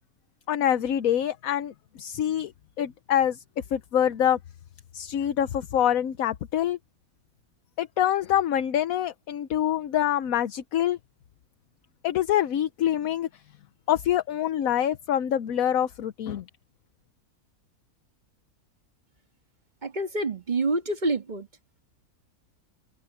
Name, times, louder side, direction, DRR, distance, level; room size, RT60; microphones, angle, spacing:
voice 1, 0.5-1.7 2.0-2.5 2.8-3.4 3.7-4.4 4.9-6.8 7.8-11.0 12.0-13.3 13.9-16.4, left 10 dB, 70° left, 1.2 m, -25 dB
voice 2, 19.8-21.5, right 2 dB, 30° right, 1.7 m, -27 dB
omnidirectional pair, 1.6 m